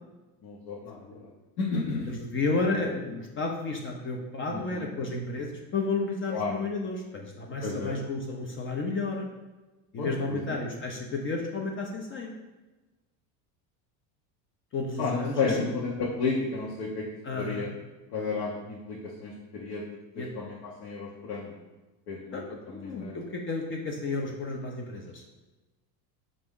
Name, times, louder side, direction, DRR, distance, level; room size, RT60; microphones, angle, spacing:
voice 1, 0.4-1.3 1.6-2.1 4.5-4.8 6.3-6.5 7.6-8.0 10.0-10.6 15.0-17.1 17.3-17.7 18.1-21.6 22.1-23.2, left 4 dB, 70° left, -4 dB, 0.9 m, -32 dB
voice 2, 2.1-9.3 9.9-12.3 14.7-15.7 17.2-17.7 20.2-20.3 22.3-25.2, left 3 dB, 30° left, 1 dB, 0.5 m, -32 dB
4.3 x 2.6 x 3.5 m, 1.1 s
supercardioid pair, 105°, 42 cm